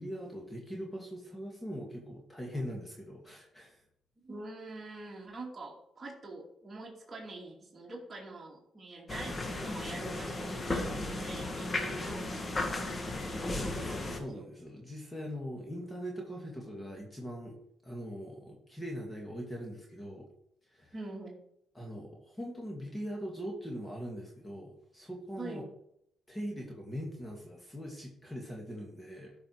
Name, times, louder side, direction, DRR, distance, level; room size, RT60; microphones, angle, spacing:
voice 1, 0.0-3.8 11.6-11.7 13.2-17.6 17.8-20.3 20.7-20.9 21.7-25.6 26.3-29.3, equal, 15° left, -1 dB, 2.4 m, -41 dB
voice 2, 4.2-14.4 20.9-21.4 25.4-25.6, right 2 dB, 25° right, -3 dB, 2.6 m, -45 dB
sound 1, 9.1-14.2, left 2 dB, 30° left, 1.8 m, -35 dB
12.5 x 5.3 x 4.9 m, 0.75 s
cardioid pair, 90°, 0 cm